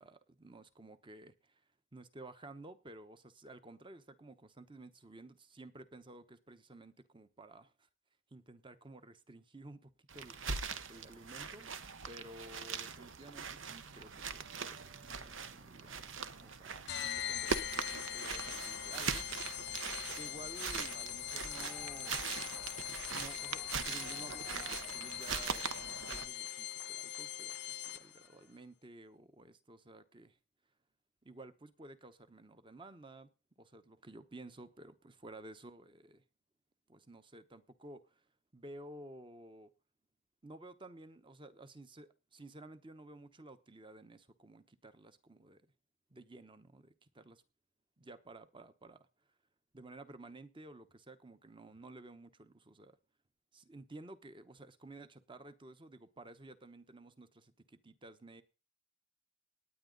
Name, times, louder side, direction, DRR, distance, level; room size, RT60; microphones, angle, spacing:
voice 1, 0.0-1.6 1.9-7.9 8.3-11.7 12.1-16.2 16.4-19.8 20.1-22.2 23.1-30.4 31.2-33.3 33.6-36.2 36.9-38.3 38.5-39.7 40.4-45.7 46.1-47.4 48.0-49.1 49.7-53.0 53.5-58.4, right 2 dB, 25° right, 0.9 m, -54 dB
sound 1, 10.1-26.3, right 5 dB, 75° right, 1.0 m, -41 dB
sound 2, 16.9-28.3, left 12 dB, 55° left, 0.6 m, -42 dB
Clapping / Cheering / Applause, 21.3-28.6, right 1 dB, ahead, 0.8 m, -59 dB
18.5 x 9.2 x 4.0 m
head